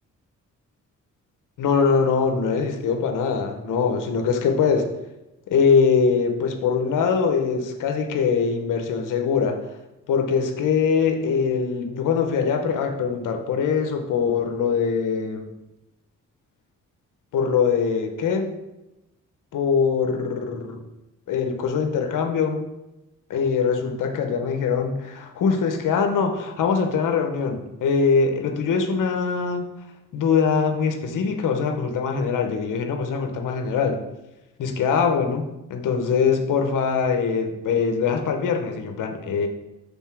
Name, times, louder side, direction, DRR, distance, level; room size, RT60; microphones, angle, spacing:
voice 1, 1.6-4.9 5.5-9.6 10.1-15.5 17.3-18.5 19.5-20.8 21.3-22.6 23.3-29.7 30.1-34.0 34.6-39.5, left 5 dB, 85° left, 5 dB, 1.0 m, -22 dB
5.5 x 3.9 x 6.0 m, 0.96 s
cardioid pair, 70°, 31 cm